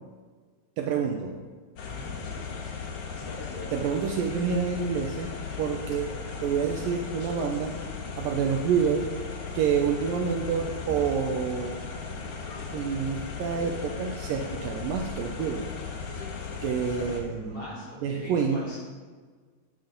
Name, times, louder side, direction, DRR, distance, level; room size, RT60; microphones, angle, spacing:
voice 1, 0.8-1.4 3.7-5.3 5.6-6.1 6.4-7.8 8.2-9.1 9.6-11.8 12.7-15.7 16.6-17.6 18.0-18.6, right 6 dB, 75° right, 2 dB, 2.2 m, -28 dB
sound 1, 1.8-17.2, left 5 dB, 60° left, 1.6 m, -36 dB
voice 2, 1.8-2.2 17.3-18.8, equal, 35° left, -7 dB, 4.2 m, -41 dB
11.5 x 9.3 x 5.3 m, 1.5 s
omnidirectional pair, 4.5 m